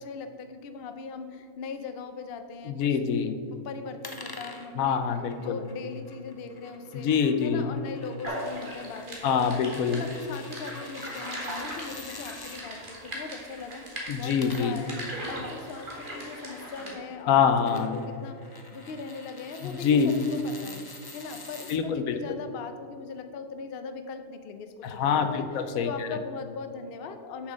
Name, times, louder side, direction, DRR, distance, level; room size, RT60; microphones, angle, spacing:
voice 1, 0.0-2.9 3.5-5.0 5.4-7.1 7.4-9.6 9.9-13.8 14.2-20.9 21.1-25.5 25.8-27.5, left 5 dB, 55° left, 8 dB, 0.7 m, -40 dB
voice 2, 2.7-3.4 4.7-5.6 6.9-7.7 9.2-10.0 14.1-14.8 17.3-18.0 19.6-20.1 21.7-22.4 24.8-25.9, left 6 dB, 75° left, 9 dB, 1.1 m, -25 dB
sound 1, 4.0-12.6 14.1-21.8, left 2 dB, 30° left, 0.4 m, -47 dB
sound 2, 8.2-16.9, right 1 dB, 35° right, 1.9 m, -39 dB
7.0 x 6.4 x 6.2 m, 2.4 s
omnidirectional pair, 1.5 m